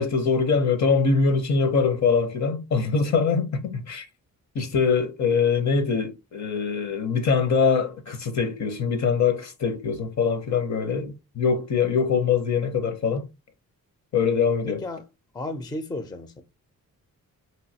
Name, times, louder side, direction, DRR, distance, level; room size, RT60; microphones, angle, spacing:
voice 1, 0.0-4.1 4.5-13.3 14.1-14.8, left 5 dB, 55° left, 0.8 m, -23 dB
voice 2, 14.7-15.0 15.3-16.4, left 1 dB, 10° left, 0.5 m, -33 dB
3.2 x 2.7 x 2.7 m
wide cardioid pair, 125°, 34 cm